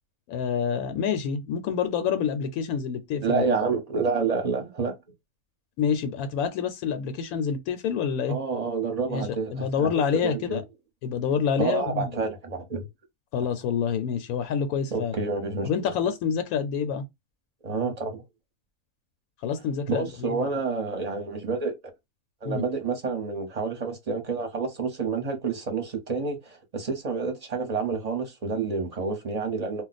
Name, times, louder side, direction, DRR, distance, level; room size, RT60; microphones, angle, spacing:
voice 1, 0.3-3.4 5.8-8.4 9.1-9.2 9.5-10.6 11.0-12.1 13.3-15.1 15.6-17.0 19.4-20.5 22.5-22.6, left 7 dB, 85° left, 1.1 m, -27 dB
voice 2, 3.2-5.0 8.3-10.6 11.6-12.9 14.9-15.9 17.6-18.2 19.9-21.8 22.4-29.8, right 4 dB, 35° right, 0.8 m, -29 dB
2.4 x 2.1 x 3.9 m
omnidirectional pair, 1.5 m